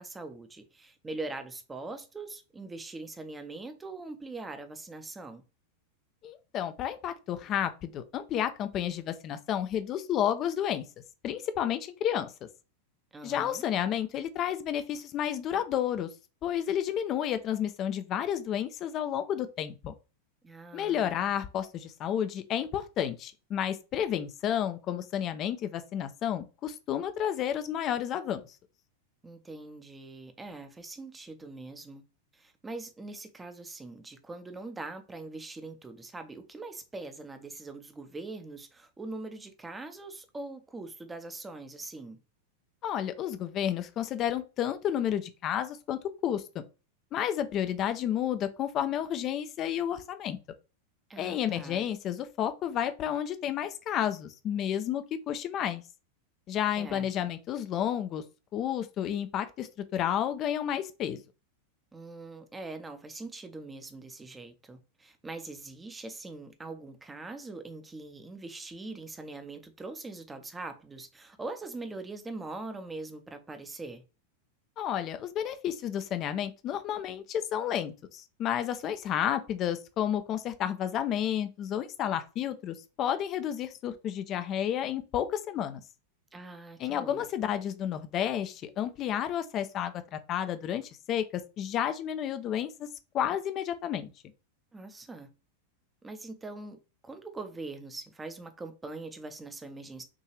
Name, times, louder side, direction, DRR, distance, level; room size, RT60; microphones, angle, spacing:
voice 1, 0.0-5.4 13.1-13.6 20.4-21.2 29.2-32.0 32.3-42.2 51.1-51.8 56.8-57.1 61.9-74.0 86.3-87.3 94.7-95.3 96.0-100.0, right 3 dB, 10° right, 0.8 m, -42 dB
voice 2, 6.2-10.9 11.2-12.3 13.2-16.1 16.4-19.9 20.7-28.4 42.8-46.6 47.1-50.4 51.2-55.8 56.5-58.2 58.5-61.2 74.8-85.8 86.8-92.7 93.1-94.1, left 10 dB, 35° left, 0.5 m, -31 dB
6.0 x 2.7 x 3.1 m
figure-of-eight pair, 90°, 0 cm